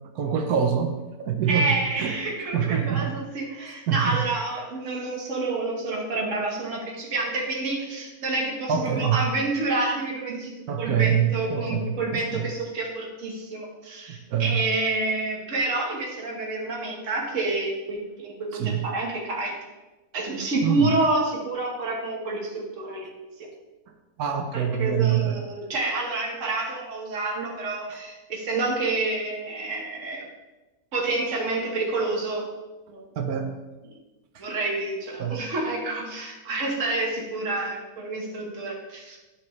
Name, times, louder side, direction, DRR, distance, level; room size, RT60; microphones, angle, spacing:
voice 1, 0.1-1.7 2.0-2.2 2.5-3.1 3.9-4.2 8.7-9.2 10.7-12.4 14.3-14.6 18.6-18.8 20.6-20.9 24.2-25.4 33.2-33.6 35.2-35.3, right 8 dB, 80° right, 5 dB, 1.3 m, -25 dB
voice 2, 1.5-10.5 10.8-19.5 20.1-23.1 23.4-23.5 24.5-30.2 30.9-32.5 32.9-33.0 34.4-39.2, right 2 dB, 55° right, -2 dB, 1.8 m, -28 dB
10.0 x 6.5 x 3.1 m, 1.1 s
omnidirectional pair, 1.6 m